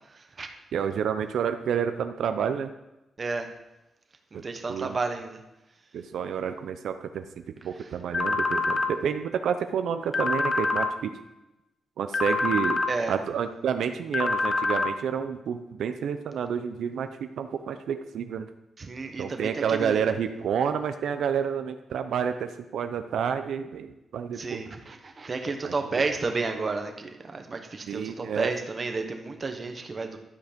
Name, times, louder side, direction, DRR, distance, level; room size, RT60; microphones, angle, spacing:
voice 1, 0.1-0.5 3.2-3.5 4.3-5.4 12.9-13.2 18.8-20.0 24.4-30.2, right 3 dB, 30° right, 5 dB, 1.1 m, -31 dB
voice 2, 0.7-2.7 4.3-4.4 4.7-5.0 5.9-11.2 12.0-12.8 13.1-18.5 19.2-24.6 25.6-26.0 27.9-28.5, right 7 dB, 70° right, 8 dB, 0.6 m, -29 dB
sound 1, 8.1-8.9 10.1-10.9 12.1-12.9 14.1-14.9, left 3 dB, 30° left, 0.8 m, -25 dB
12.0 x 8.0 x 5.2 m, 0.96 s
wide cardioid pair, 180°, 0 cm